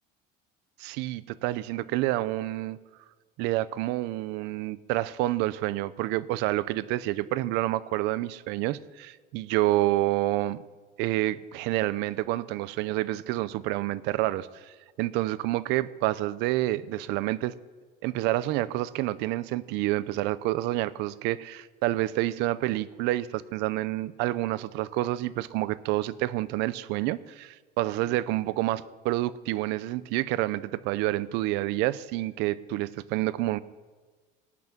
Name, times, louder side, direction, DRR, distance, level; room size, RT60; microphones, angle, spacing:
voice 1, 0.8-2.8 3.4-10.6 11.0-17.5 18.0-27.5 27.8-33.6, right 16 dB, 60° right, 17 dB, 0.6 m, -28 dB
18.0 x 6.1 x 8.9 m, 1.4 s
cardioid pair, 170°, 19 cm